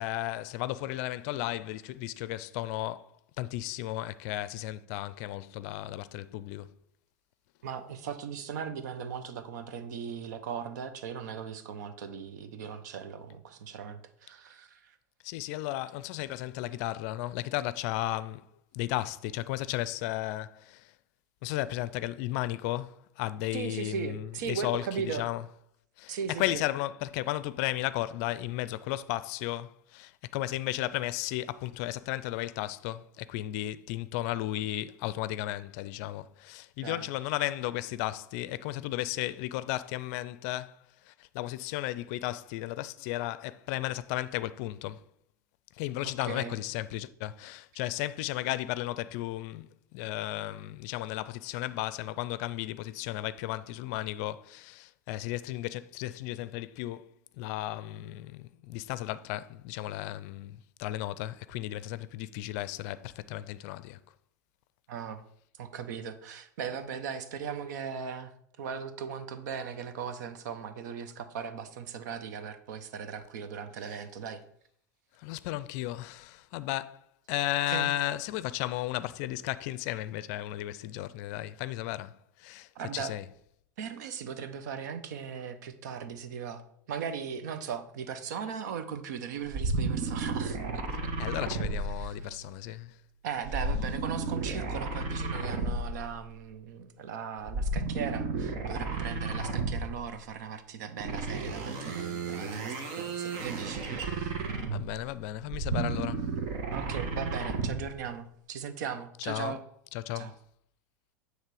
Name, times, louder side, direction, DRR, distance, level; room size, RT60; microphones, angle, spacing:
voice 1, 0.0-3.1 3.4-6.7 15.2-18.5 18.7-20.9 21.4-25.5 26.0-40.8 41.0-45.1 45.7-64.0 75.2-83.3 91.2-93.0 104.7-106.3 109.2-109.5 109.9-110.3, left 15 dB, 60° left, 0.4 m, -34 dB
voice 2, 7.6-14.9 23.5-25.2 26.1-26.6 36.8-37.1 46.2-46.5 64.9-65.2 65.6-68.3 68.6-74.4 77.7-77.9 82.7-83.1 83.8-86.6 86.9-91.1 92.0-92.4 93.2-104.5 106.7-109.6 110.1-110.3, right 7 dB, 70° right, 0.8 m, -38 dB
sound 1, 89.5-92.5 93.4-96.1 97.4-100.0 101.0-105.0 105.4-107.9, right 3 dB, 55° right, 1.3 m, -33 dB
9.0 x 3.2 x 4.8 m
hypercardioid pair, 95°, 10 cm